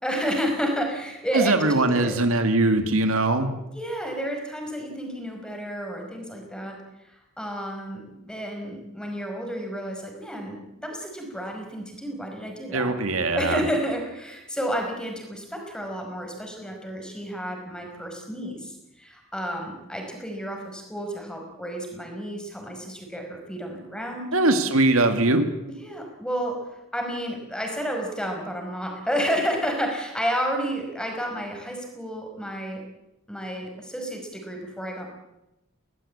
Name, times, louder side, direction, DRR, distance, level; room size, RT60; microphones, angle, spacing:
voice 1, 0.0-2.2 3.7-12.9 13.3-24.3 25.7-26.6 26.9-32.8 33.3-35.1, equal, 5° left, 2 dB, 5.2 m, -31 dB
voice 2, 1.3-3.5 12.7-13.6 24.3-25.5, right 2 dB, 75° right, 7 dB, 2.2 m, -21 dB
21.5 x 19.0 x 8.7 m, 0.92 s
head